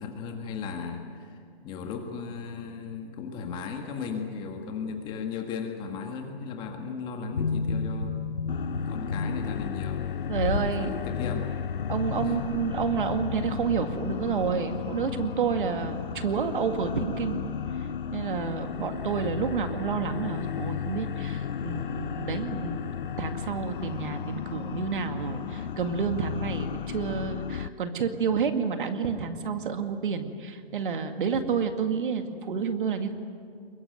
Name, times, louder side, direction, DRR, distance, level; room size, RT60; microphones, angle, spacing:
voice 1, 0.0-8.2 8.8-10.0 10.4-11.5 12.2-12.5 12.9-13.0, left 5 dB, 15° left, 3 dB, 1.7 m, -36 dB
sound 1, 7.3-10.7 11.2-11.3, left 4 dB, 85° left, 2.7 m, -31 dB
sound 2, 8.5-27.7, left 8 dB, 55° left, 0.7 m, -34 dB
voice 2, 10.3-11.0 11.9-17.4 18.1-33.1, right 6 dB, 55° right, 7 dB, 2.2 m, -29 dB
23.5 x 22.0 x 9.3 m, 2.2 s
hypercardioid pair, 160°, 31 cm